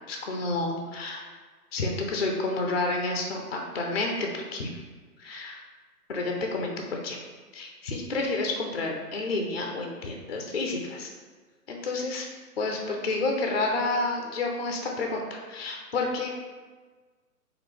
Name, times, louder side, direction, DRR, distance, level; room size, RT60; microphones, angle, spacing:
voice 1, 0.1-1.3 1.7-4.7 5.2-5.6 6.1-7.2 7.5-11.1 11.7-12.3 12.6-16.3, left 2 dB, 45° left, 1 dB, 0.4 m, -30 dB
4.2 x 2.6 x 3.1 m, 1.4 s
hypercardioid pair, 155°, 47 cm